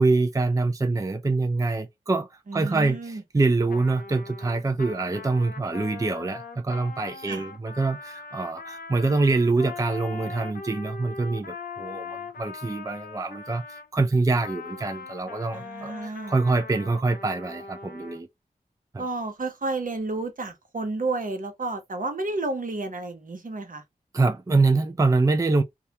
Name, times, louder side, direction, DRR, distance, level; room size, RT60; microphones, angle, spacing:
voice 1, 0.0-18.3 18.9-19.0 24.1-25.6, right 3 dB, 20° right, 0.4 m, -25 dB
voice 2, 2.5-3.2 7.3-7.5 15.5-16.3 19.0-23.8, right 2 dB, 65° right, 0.9 m, -31 dB
Trumpet, 3.7-13.9 14.4-18.2, left 4 dB, 80° left, 0.5 m, -41 dB
2.3 x 2.2 x 2.8 m
cardioid pair, 40°, 15 cm